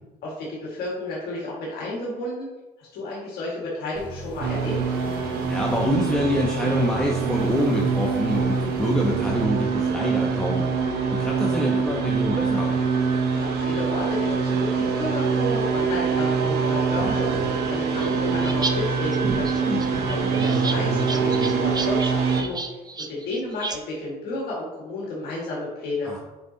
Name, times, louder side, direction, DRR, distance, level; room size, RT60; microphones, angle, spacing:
voice 1, 0.2-2.5 2.8-4.8 13.3-19.5 20.1-22.6 23.1-26.1, left 2 dB, 70° left, -5 dB, 1.7 m, -32 dB
sound 1, 3.9-9.5, right 1 dB, 30° left, 1.5 m, -39 dB
sound 2, 4.4-22.4, right 5 dB, 75° right, 0.9 m, -24 dB
voice 2, 5.5-10.7 11.1-12.7 19.7-19.8 26.0-26.2, left 1 dB, 5° left, -3 dB, 0.9 m, -26 dB
sound 3, 17.0-18.7 19.0-23.8, right 4 dB, 25° right, 0.6 m, -32 dB
7.9 x 5.0 x 2.8 m, 1.1 s
cardioid pair, 110°, 17 cm